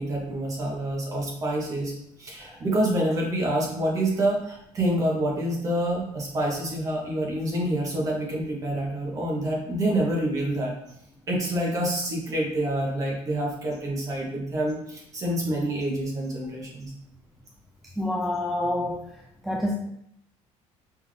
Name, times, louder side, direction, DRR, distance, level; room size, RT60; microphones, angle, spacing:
voice 1, 0.0-1.9 2.2-10.7 11.3-16.9, right 1 dB, 25° right, -2 dB, 1.0 m, -27 dB
voice 2, 18.0-19.0 19.4-19.7, left 1 dB, ahead, -2 dB, 0.3 m, -27 dB
5.5 x 2.6 x 3.2 m, 0.75 s
cardioid pair, 180°, 12 cm